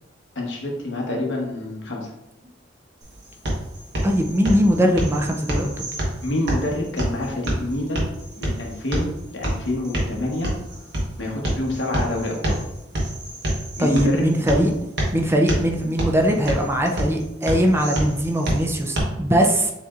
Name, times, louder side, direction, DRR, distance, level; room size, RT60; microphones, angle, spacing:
voice 1, 0.3-2.1 6.2-8.1 8.3-10.5 11.2-12.6 13.8-14.3, left 1 dB, 70° left, -1 dB, 1.1 m, -27 dB
sound 1, 3.0-19.0, right 1 dB, 65° right, 1.2 m, -28 dB
voice 2, 4.0-5.9 13.8-14.7 15.1-19.7, equal, 15° right, 2 dB, 0.5 m, -20 dB
6.8 x 3.0 x 2.4 m, 0.87 s
head